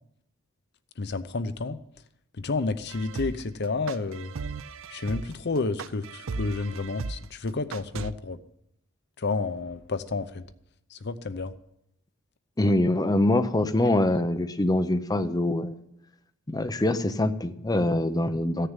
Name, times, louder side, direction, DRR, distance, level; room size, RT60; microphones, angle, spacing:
voice 1, 1.0-1.8 2.4-4.3 4.9-8.4 9.2-10.4 10.9-11.5, left 3 dB, 55° left, 13 dB, 0.7 m, -30 dB
sound 1, 2.9-8.1, right 4 dB, 70° right, 0.5 m, -36 dB
voice 2, 12.6-15.8 16.5-18.7, left 1 dB, 20° left, 9 dB, 0.6 m, -24 dB
15.0 x 6.7 x 9.0 m, 0.76 s
head